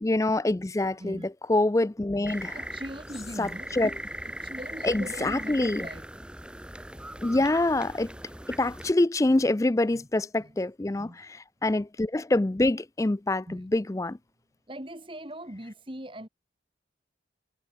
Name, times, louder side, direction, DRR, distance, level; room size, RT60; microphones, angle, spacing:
voice 1, 0.0-1.2 1.5-2.6 3.4-3.9 4.8-5.9 7.2-8.1 8.5-14.2, left 2 dB, 15° left, 0.4 m, -25 dB
sound 1, 2.3-8.9, right 1 dB, 5° right, 1.9 m, -39 dB
voice 2, 2.5-3.7 4.2-6.1 9.9-10.1 10.4-10.6 11.0-11.2 13.5-13.9 14.7-16.3, right 1 dB, 25° right, 3.3 m, -41 dB
head